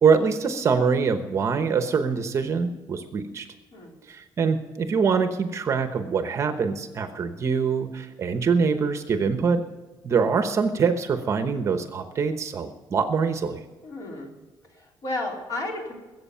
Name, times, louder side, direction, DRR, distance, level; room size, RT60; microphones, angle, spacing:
voice 1, 0.0-3.5 4.1-9.6 10.0-13.6, right 5 dB, 35° right, 8 dB, 1.0 m, -24 dB
voice 2, 13.8-14.4 14.7-15.9, left 2 dB, 40° left, -1 dB, 4.0 m, -33 dB
21.5 x 8.0 x 5.6 m, 1.2 s
cardioid pair, 175°, 9 cm